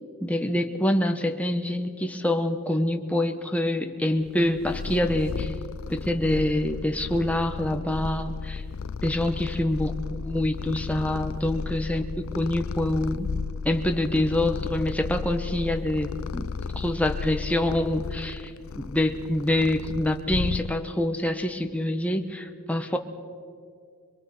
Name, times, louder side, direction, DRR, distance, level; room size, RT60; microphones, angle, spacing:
voice 1, 0.2-5.5 5.9-8.6 9.0-9.9 10.2-12.0 12.3-13.3 13.6-18.5 18.8-23.0, left 1 dB, 5° left, 5 dB, 1.2 m, -26 dB
Purr, 4.3-21.1, left 5 dB, 75° left, 0.4 m, -34 dB
26.0 x 22.5 x 5.7 m, 2.2 s
head